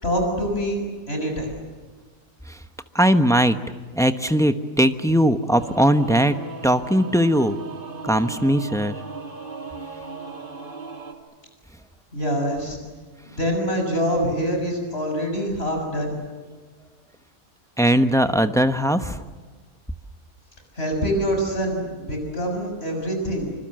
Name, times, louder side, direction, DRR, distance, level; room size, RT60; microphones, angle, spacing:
voice 1, 0.0-0.8 1.1-1.5 12.1-12.8 13.3-16.1 20.8-23.5, equal, 45° left, 3 dB, 7.0 m, -25 dB
voice 2, 2.9-3.6 3.9-6.4 6.6-7.6 8.0-9.0 17.8-19.2, equal, 5° left, 9 dB, 0.9 m, -19 dB
Singing / Musical instrument, 5.5-11.1, right 3 dB, 40° right, 2.8 m, -36 dB
26.0 x 25.5 x 7.7 m, 1.4 s
omnidirectional pair, 1.4 m